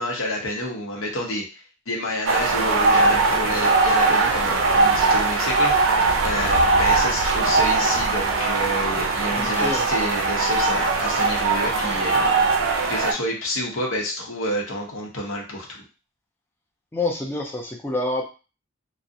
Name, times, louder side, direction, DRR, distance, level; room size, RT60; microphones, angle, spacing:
voice 1, 0.0-12.5 12.9-15.8, left 1 dB, 85° left, 0 dB, 0.7 m, -29 dB
sound 1, 2.3-13.1, right 3 dB, 75° right, 0.4 m, -20 dB
voice 2, 9.4-9.9 16.9-18.2, left 2 dB, 10° left, -1 dB, 0.4 m, -27 dB
2.4 x 2.0 x 2.6 m, 0.33 s
head